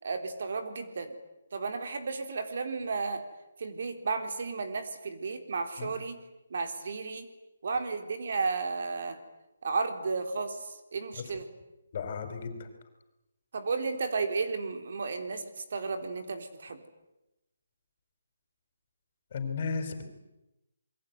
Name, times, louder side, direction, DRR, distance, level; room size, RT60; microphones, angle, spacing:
voice 1, 0.0-1.2 1.5-3.2 3.6-6.2 6.5-7.3 7.6-9.2 9.6-11.5 13.5-15.4 15.7-16.8, right 4 dB, 55° right, 8 dB, 3.6 m, -33 dB
voice 2, 11.9-12.7 19.3-20.0, left 5 dB, 40° left, 8 dB, 4.7 m, -34 dB
28.0 x 22.5 x 9.4 m, 0.95 s
hypercardioid pair, 165°, 0 cm